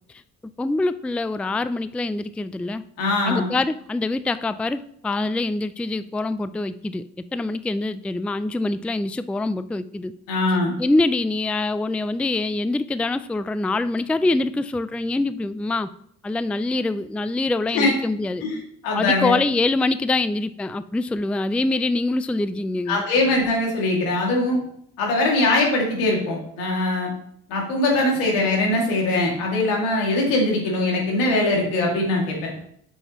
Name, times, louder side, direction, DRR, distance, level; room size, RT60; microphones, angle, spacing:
voice 1, 0.6-2.8 3.3-10.1 10.5-15.9 16.2-18.4 18.9-23.0, left 2 dB, 5° left, 14 dB, 0.4 m, -24 dB
voice 2, 3.0-3.5 10.3-10.7 17.7-17.9 18.4-19.4 22.9-24.6 25.0-27.1 27.5-32.5, left 2 dB, 85° left, -1 dB, 2.5 m, -22 dB
7.8 x 7.2 x 3.1 m, 0.70 s
hypercardioid pair, 50°, 34 cm